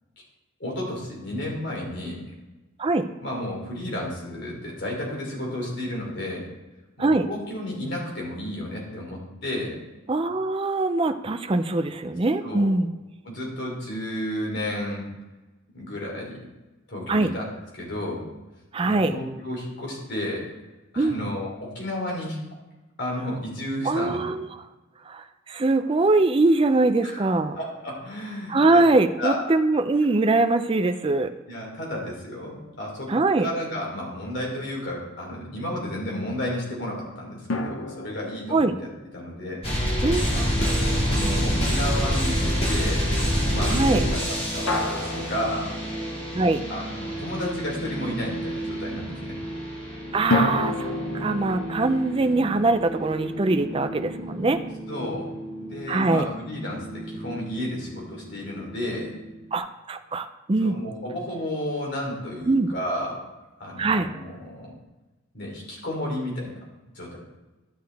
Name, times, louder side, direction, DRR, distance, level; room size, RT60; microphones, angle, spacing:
voice 1, 0.6-2.2 3.2-6.5 7.0-9.8 12.4-12.7 13.2-15.0 15.7-16.4 16.9-17.5 17.7-18.3 18.8-20.5 20.9-22.4 23.0-24.2 27.0-27.3 27.5-28.8 29.2-29.5 31.5-39.6 40.3-43.0 43.5-45.7 46.7-49.4 54.9-55.3 55.6-59.1 60.6-63.2 63.6-64.7 65.3-66.5 66.9-67.2, left 1 dB, 55° left, -2 dB, 3.1 m, -32 dB
voice 2, 10.1-12.9 17.1-17.3 18.7-19.1 21.0-21.2 23.8-24.5 25.1-27.6 28.5-31.3 33.1-33.5 38.5-38.7 40.0-40.2 43.7-44.0 46.3-46.6 50.1-54.6 55.9-56.3 59.5-60.7 62.5-62.7 63.8-64.1, right 2 dB, 25° right, 8 dB, 0.4 m, -22 dB
sound 1, 37.5-40.9 44.7-46.7 50.3-53.4, left 2 dB, 70° left, 0.8 m, -31 dB
Worthless Scavenger, 39.6-59.5, equal, 30° left, 2.0 m, -29 dB
12.0 x 6.7 x 3.4 m, 1.1 s
head